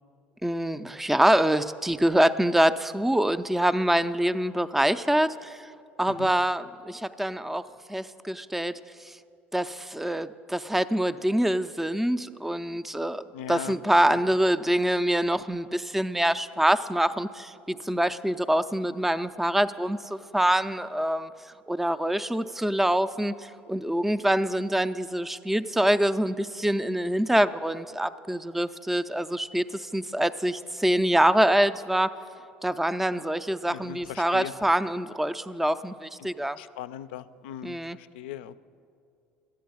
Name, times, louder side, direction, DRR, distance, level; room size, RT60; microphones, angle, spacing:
voice 1, 0.4-5.6 6.0-8.8 9.1-9.2 9.5-21.3 21.7-32.1 32.6-36.6 37.6-38.0, right 1 dB, 5° right, 12 dB, 0.4 m, -25 dB
voice 2, 13.3-14.2 33.6-34.5 36.2-36.3 36.6-38.6, left 11 dB, 65° left, 15 dB, 0.4 m, -39 dB
11.5 x 8.6 x 9.0 m, 2.5 s
figure-of-eight pair, 65°, 6 cm